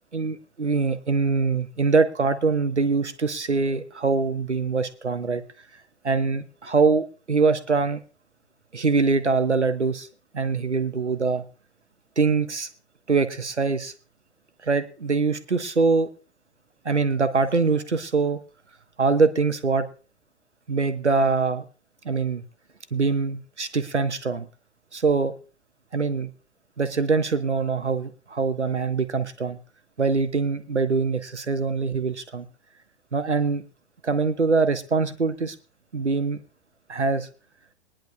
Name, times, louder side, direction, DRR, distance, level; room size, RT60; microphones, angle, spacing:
voice 1, 0.1-5.4 6.0-8.0 8.7-10.1 10.3-11.4 12.2-12.7 13.1-13.9 14.6-16.1 16.8-18.4 19.0-19.9 20.7-21.6 22.0-22.4 22.9-24.5 24.9-25.3 25.9-26.3 26.8-29.6 30.0-32.5 33.1-33.6 34.0-35.5 35.9-36.4 36.9-37.3, right 4 dB, 85° right, 10 dB, 1.2 m, -23 dB
22.5 x 10.5 x 2.3 m, 0.35 s
figure-of-eight pair, 105°, 34 cm